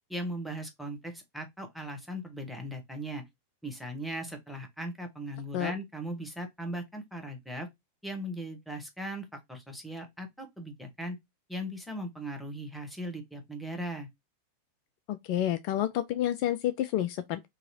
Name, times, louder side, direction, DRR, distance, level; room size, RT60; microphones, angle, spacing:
voice 1, 0.1-3.2 3.6-7.7 8.0-11.2 11.5-14.1, right 1 dB, ahead, 1.1 m, -38 dB
voice 2, 15.1-17.5, left 12 dB, 45° left, 0.3 m, -29 dB
3.8 x 2.8 x 2.7 m
figure-of-eight pair, 90°, 0 cm